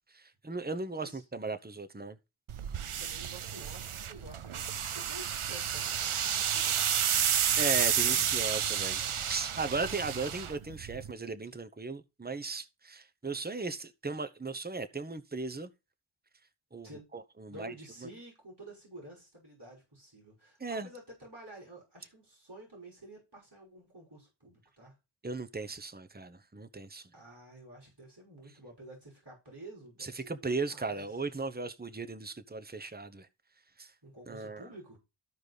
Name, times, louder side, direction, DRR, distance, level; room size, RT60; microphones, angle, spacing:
voice 1, 0.1-2.2 7.6-15.7 16.7-17.7 20.6-20.9 25.2-27.1 30.0-33.3 33.8-33.9 34.3-34.7, right 3 dB, 20° right, 1.0 m, -37 dB
sound 1, 2.5-11.1, right 8 dB, 85° right, 0.7 m, -31 dB
voice 2, 3.0-7.6 8.0-8.6 16.8-17.1 17.5-25.0 27.1-31.1 34.0-35.0, right 1 dB, 55° right, 5.8 m, -51 dB
14.0 x 5.1 x 4.0 m
wide cardioid pair, 40°, 48 cm